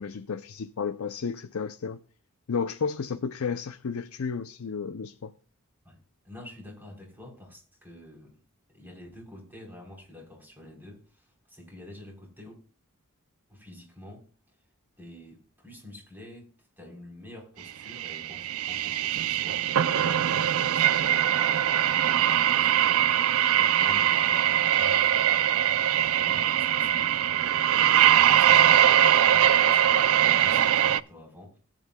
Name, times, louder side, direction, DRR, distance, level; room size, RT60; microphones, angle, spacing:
voice 1, 0.0-2.0 2.5-5.3, left 5 dB, 75° left, 0.5 m, -32 dB
voice 2, 6.2-8.4 8.7-12.6 13.5-14.3 15.0-31.6, left 1 dB, 10° right, 3.9 m, -48 dB
sound 1, 17.9-31.0, right 10 dB, 75° right, 0.4 m, -22 dB
17.5 x 9.1 x 2.3 m
head